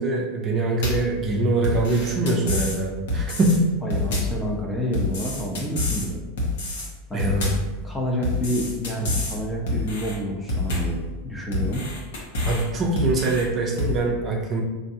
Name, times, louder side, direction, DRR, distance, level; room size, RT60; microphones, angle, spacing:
voice 1, 0.0-3.7 7.1-7.6 12.5-14.6, right 2 dB, 30° right, -1 dB, 0.5 m, -23 dB
sound 1, 0.8-1.1 1.6-2.8 3.1-3.6 3.9-4.4 4.9-6.1 6.4-6.9 7.2-7.7 8.2-9.4 9.7-10.2 10.5-11.0 11.5-12.6 13.0-13.4 13.8-14.0, left 2 dB, 80° left, 1.0 m, -27 dB
voice 2, 3.8-6.2 7.1-7.4 7.8-11.8, equal, 10° left, -2 dB, 0.7 m, -28 dB
4.4 x 2.6 x 2.7 m, 1.2 s
supercardioid pair, 130°, 0 cm